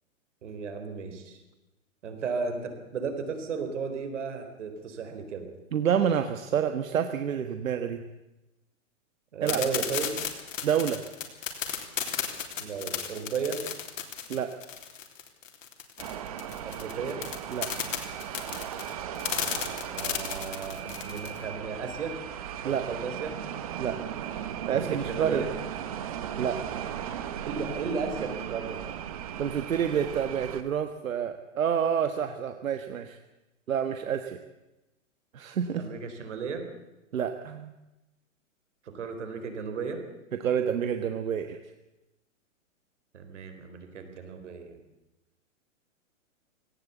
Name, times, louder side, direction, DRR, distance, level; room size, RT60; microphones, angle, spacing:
voice 1, 0.4-1.4 2.0-5.5 9.3-10.1 12.6-13.6 16.6-17.2 19.9-22.2 22.6-23.4 24.7-25.5 27.5-28.8 35.7-36.6 38.8-40.0 43.1-44.8, right 5 dB, 60° right, 7 dB, 4.2 m, -34 dB
voice 2, 5.7-8.0 9.4-9.6 10.6-11.0 14.3-14.5 17.5-17.7 22.6-22.9 23.8-24.0 24.7-25.4 26.4-26.6 29.4-33.2 33.7-34.4 35.3-35.8 37.1-37.7 40.4-41.6, right 8 dB, 85° right, 8 dB, 1.5 m, -28 dB
sound 1, 9.5-21.4, left 8 dB, 70° left, 3.4 m, -33 dB
sound 2, 16.0-30.6, right 9 dB, 25° right, 1.0 m, -37 dB
18.0 x 17.5 x 8.3 m, 1.0 s
hypercardioid pair, 175°, 40 cm